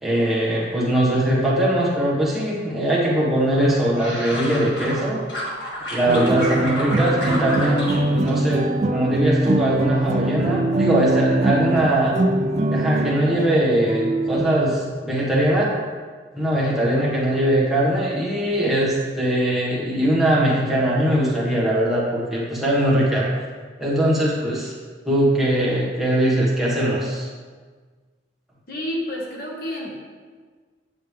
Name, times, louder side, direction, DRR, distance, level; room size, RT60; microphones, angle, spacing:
voice 1, 0.0-5.2 5.9-8.7 8.9-12.2 12.7-15.7 16.3-23.3 23.8-24.7 25.0-27.3, right 1 dB, ahead, -7 dB, 1.5 m, -21 dB
sound 1, 3.6-5.0 5.3-8.0 8.3-9.0 9.4-9.8, equal, 70° left, 1.9 m, -30 dB
sound 2, 6.1-14.6, right 2 dB, 40° right, 0.4 m, -23 dB
voice 2, 28.7-30.0, left 1 dB, 55° left, -2 dB, 1.3 m, -29 dB
8.6 x 6.5 x 3.3 m, 1.5 s
head